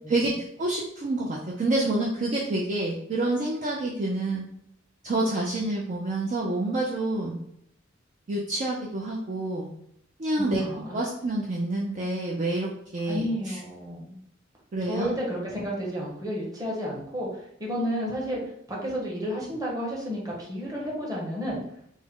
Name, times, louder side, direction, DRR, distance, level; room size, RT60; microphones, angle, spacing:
voice 1, 0.1-4.4 5.0-7.4 8.3-9.7 10.2-10.6 10.9-13.6 14.7-15.2, right 2 dB, 40° right, -3 dB, 0.4 m, -28 dB
voice 2, 10.4-11.0 13.0-14.2 14.9-18.4 18.7-21.6, equal, 20° right, -3 dB, 0.8 m, -31 dB
3.5 x 2.0 x 3.5 m, 0.72 s
head